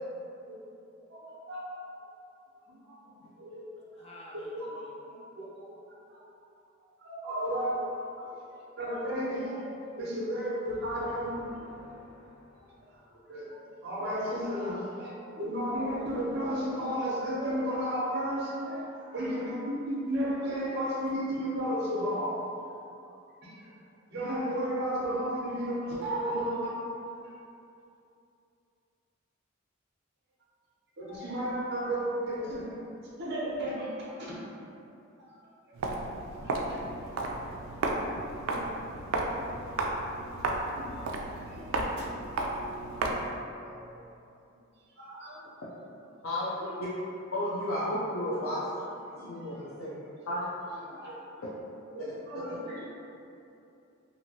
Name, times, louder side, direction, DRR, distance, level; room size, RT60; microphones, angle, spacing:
voice 1, 1.1-1.8 2.7-3.7 4.0-4.1 4.5-5.7 7.0-9.7 10.0-11.4 11.6-11.7 13.1-22.4 22.7-22.8 23.4-23.7 24.1-26.7 27.2-27.3 31.0-32.7 33.2-34.4 36.4-36.8 37.2-37.3 38.4-38.8 39.4-39.5 40.8-41.7 42.3-42.4 45.0-45.3 46.6-46.7 48.3-48.4 49.1-49.7 50.7-51.2 51.9-52.9, equal, 55° right, -7 dB, 0.7 m, -34 dB
voice 2, 4.0-4.9 10.8-13.0, left 1 dB, 30° left, -3 dB, 0.4 m, -52 dB
Walk footsteps, 35.7-43.4, right 2 dB, 80° right, 0.3 m, -33 dB
voice 3, 47.3-48.6 49.0-50.0 50.3-50.5, left 1 dB, 85° left, -9 dB, 0.5 m, -32 dB
2.9 x 2.6 x 2.7 m, 2.7 s
head